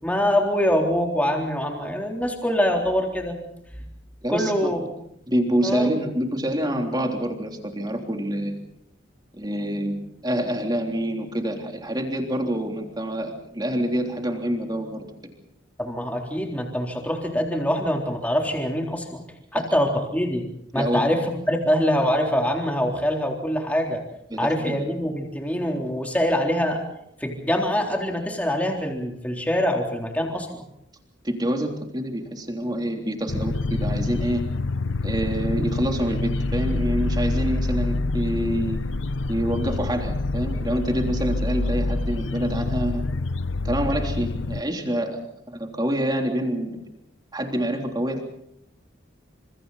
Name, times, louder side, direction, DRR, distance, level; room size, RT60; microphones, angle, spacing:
voice 1, 0.0-3.4 4.3-4.8 5.6-5.9 15.8-19.2 19.5-20.4 20.7-24.0 24.4-26.8 27.2-30.6, equal, 10° left, 1 dB, 3.7 m, -24 dB
voice 2, 4.2-4.7 5.3-8.6 9.4-10.0 10.2-15.1 19.5-19.7 20.7-21.2 24.3-24.8 31.2-34.4 35.0-38.8 39.3-43.0 43.6-45.2 45.5-46.8 47.3-48.2, equal, 20° right, 3 dB, 3.4 m, -26 dB
sound 1, 33.3-44.6, left 2 dB, 80° left, 0.8 m, -27 dB
29.5 x 27.0 x 4.2 m, 0.75 s
head